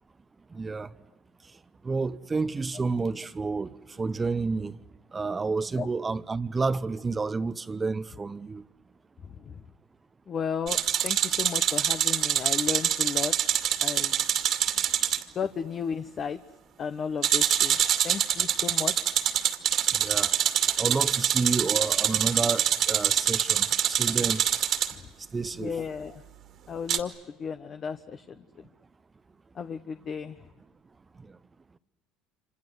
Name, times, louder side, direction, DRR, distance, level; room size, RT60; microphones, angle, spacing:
voice 1, 0.5-0.9 1.8-4.8 5.1-8.6 19.9-20.3 20.8-24.4 25.3-25.8, right 4 dB, 20° right, 0.9 m, -30 dB
voice 2, 10.3-13.3 13.8-14.3 15.3-16.4 16.8-19.4 24.9-25.1 25.5-26.2 26.7-28.4 29.5-30.4, left 6 dB, 40° left, 1.1 m, -34 dB
sound 1, 10.7-15.2 17.2-24.9 26.9-27.0, right 10 dB, 55° right, 2.4 m, -25 dB
27.0 x 27.0 x 8.0 m
supercardioid pair, 85°, 0 cm